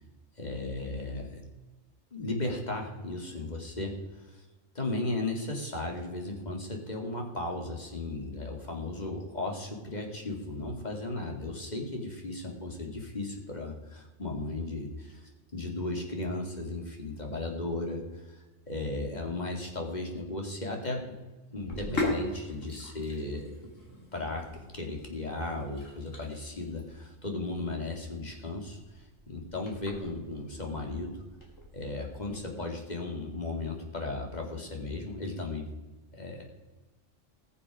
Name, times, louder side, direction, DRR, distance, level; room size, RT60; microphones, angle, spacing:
voice 1, 0.4-1.4 2.1-4.4 4.7-21.1 21.5-23.5 24.1-31.2 31.7-35.7 36.1-36.4, left 2 dB, 35° left, 1 dB, 2.5 m, -36 dB
Sink (filling or washing), 21.5-32.4, left 1 dB, 80° left, 3.4 m, -40 dB
20.0 x 7.1 x 4.9 m, 1.2 s
omnidirectional pair, 1.3 m